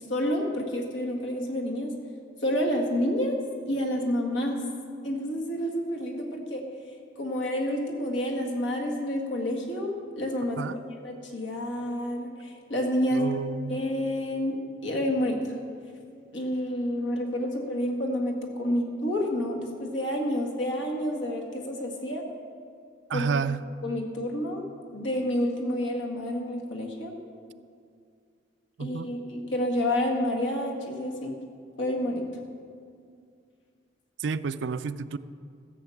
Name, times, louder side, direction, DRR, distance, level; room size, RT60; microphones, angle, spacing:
voice 1, 0.1-1.9 2.4-3.4 3.7-4.6 5.0-6.6 7.2-10.7 11.0-13.3 13.7-14.6 14.8-15.4 16.3-22.2 23.1-23.3 23.8-24.7 24.9-27.1 28.8-31.3 31.8-32.2, left 1 dB, 85° left, 0 dB, 1.8 m, -29 dB
voice 2, 13.1-13.8 23.1-23.6 28.8-29.1 34.2-35.2, right 5 dB, 70° right, 12 dB, 0.4 m, -30 dB
14.0 x 7.8 x 7.2 m, 2.3 s
head